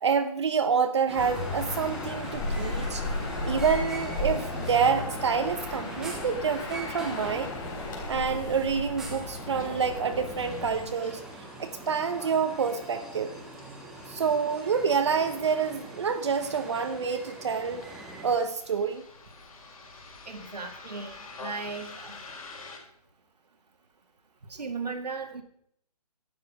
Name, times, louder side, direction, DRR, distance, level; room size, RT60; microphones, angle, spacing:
voice 1, 0.0-3.0 3.4-7.5 8.1-11.2 11.6-13.3 14.1-17.8 18.2-19.0, right 6 dB, 45° right, 9 dB, 0.7 m, -27 dB
sound 1, 1.1-18.4, right 2 dB, ahead, 0.5 m, -42 dB
sound 2, 1.2-10.9, left 2 dB, 30° left, 3.3 m, -35 dB
Bus, 9.3-22.8, left 3 dB, 65° left, 4.1 m, -49 dB
voice 2, 20.3-22.2 24.5-25.4, right 4 dB, 85° right, 6 dB, 1.9 m, -36 dB
12.0 x 9.1 x 5.0 m, 0.68 s
hypercardioid pair, 160°, 20 cm